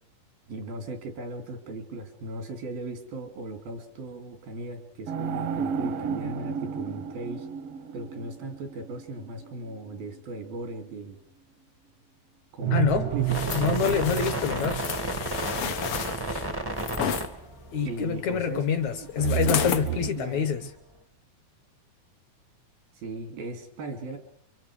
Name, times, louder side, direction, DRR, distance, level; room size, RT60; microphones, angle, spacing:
voice 1, 0.5-7.5 7.9-11.2 12.5-12.8 13.1-14.0 17.8-20.7 23.0-24.2, right 2 dB, 90° right, 4.6 m, -37 dB
sound 1, 5.1-10.2 12.6-16.6 19.2-20.1, right 9 dB, 65° right, 1.5 m, -32 dB
voice 2, 12.7-13.1 13.5-14.8 17.7-20.7, left 7 dB, 65° left, 2.1 m, -26 dB
sound 2, 12.8-19.4 19.7-19.8, right 1 dB, 40° right, 0.3 m, -33 dB
sound 3, 13.3-17.3 19.2-19.9 20.4-20.5, left 9 dB, 80° left, 1.2 m, -32 dB
29.5 x 25.0 x 5.0 m
omnidirectional pair, 4.1 m